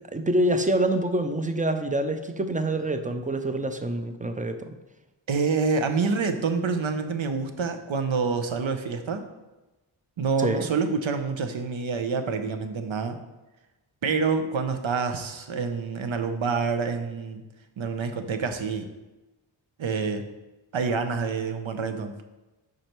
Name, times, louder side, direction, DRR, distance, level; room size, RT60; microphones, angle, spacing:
voice 1, 0.1-4.7 10.4-10.7, right 1 dB, 15° right, 7 dB, 0.5 m, -26 dB
voice 2, 5.3-9.3 10.2-13.2 14.0-17.4 17.8-18.9 19.8-20.3 20.7-22.1, right 5 dB, 65° right, 7 dB, 0.8 m, -27 dB
5.3 x 4.8 x 4.5 m, 1.1 s
cardioid pair, 50°, 50 cm